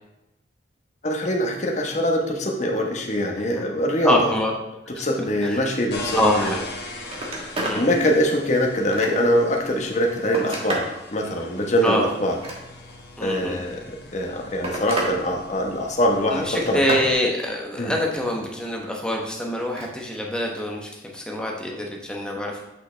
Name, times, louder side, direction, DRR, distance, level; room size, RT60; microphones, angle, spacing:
voice 1, 1.0-4.3 5.0-6.5 7.7-10.8 11.1-12.4 13.2-13.8 14.1-16.8 17.8-17.9, equal, 40° left, 1 dB, 1.1 m, -23 dB
voice 2, 4.0-4.5 4.9-5.0 5.4-5.6 6.2-6.7 7.6-7.9 11.8-12.1 13.2-13.6 16.3-22.5, left 1 dB, 5° left, -1 dB, 1.0 m, -25 dB
sound 1, 5.9-17.1, left 2 dB, 65° left, 1.3 m, -40 dB
Telephone, 6.6-6.7 7.0-7.8 8.3-9.4 10.0-11.0 12.2-13.0 14.0-15.2 15.5-16.0 16.4-17.1 19.6-19.9 21.3-21.4, right 1 dB, 35° right, 1.4 m, -31 dB
8.5 x 5.6 x 3.3 m, 0.96 s
head